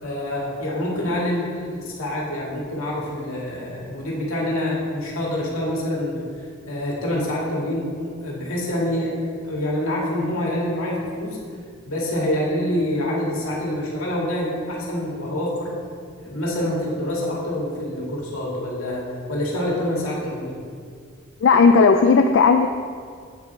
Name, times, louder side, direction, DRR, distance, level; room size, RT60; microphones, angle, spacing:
voice 1, 0.0-6.2 6.7-11.4 11.9-15.8 16.2-20.6, left 1 dB, 80° left, -4 dB, 2.1 m, -26 dB
voice 2, 21.4-22.7, left 4 dB, 60° left, 5 dB, 0.3 m, -14 dB
8.2 x 7.9 x 3.5 m, 2.1 s
head